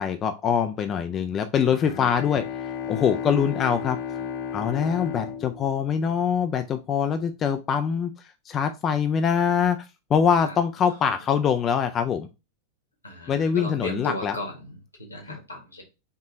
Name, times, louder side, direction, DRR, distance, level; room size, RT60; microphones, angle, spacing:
voice 1, 0.0-2.4 2.9-4.0 4.5-8.1 8.5-9.8 10.1-12.3 13.3-14.3, left 7 dB, 25° left, 8 dB, 0.4 m, -23 dB
Bowed string instrument, 1.6-6.6, left 7 dB, 45° left, 1.0 m, -34 dB
voice 2, 10.4-11.0 13.0-15.8, left 2 dB, 80° left, 2 dB, 1.6 m, -36 dB
4.5 x 2.9 x 3.9 m, 0.27 s
figure-of-eight pair, 90°, 0 cm